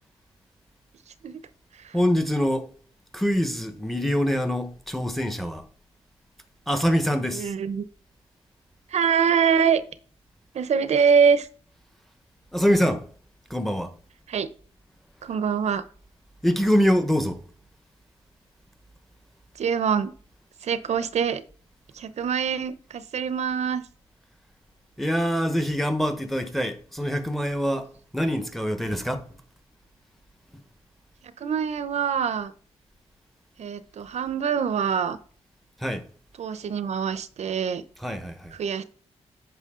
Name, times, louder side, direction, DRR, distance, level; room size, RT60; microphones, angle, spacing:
voice 1, 1.9-2.7 3.1-5.6 6.7-7.5 12.5-13.0 13.5-13.9 16.4-17.4 25.0-27.9 28.1-29.2 35.8-36.0 38.0-38.5, equal, ahead, 1.2 m, -24 dB
voice 2, 7.3-7.8 8.9-9.8 10.5-11.5 14.3-14.5 15.2-15.8 19.6-20.1 20.6-21.4 22.0-23.8 31.4-32.5 33.6-35.2 36.4-37.8 38.5-38.8, right 6 dB, 70° right, 0.8 m, -24 dB
9.2 x 6.2 x 3.8 m
wide cardioid pair, 120°, 12 cm